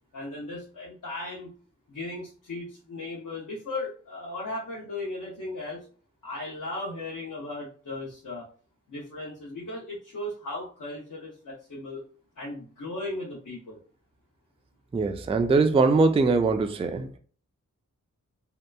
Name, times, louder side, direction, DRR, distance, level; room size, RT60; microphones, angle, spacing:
voice 1, 0.1-1.5 1.9-5.8 6.2-8.4 8.9-12.0 12.4-13.8, left 2 dB, 75° left, 0.8 m, -36 dB
voice 2, 14.9-17.2, right 3 dB, 20° right, 0.3 m, -22 dB
2.8 x 2.3 x 2.2 m
cardioid pair, 45°, 31 cm